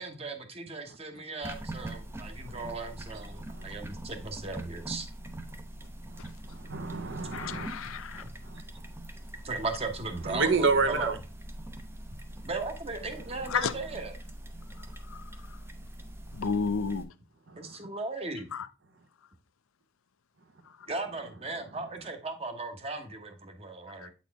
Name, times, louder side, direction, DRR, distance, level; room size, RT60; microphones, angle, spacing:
voice 1, 0.0-5.1 9.4-11.1 12.4-14.1 17.6-18.5 20.9-24.1, right 3 dB, 30° right, 1.0 m, -37 dB
sound 1, 1.4-17.0, right 1 dB, 10° right, 0.6 m, -43 dB
voice 2, 3.1-3.7 6.1-6.2 6.5-8.6 10.2-11.2 13.3-13.4 17.5-17.8 21.6-21.7, right 4 dB, 60° right, 0.7 m, -31 dB
voice 3, 7.3-8.2 13.5-13.7 14.8-15.2 15.5-15.6 16.3-17.1 18.5-18.7 24.0-24.1, left 5 dB, 80° left, 0.5 m, -32 dB
8.5 x 4.2 x 3.4 m
head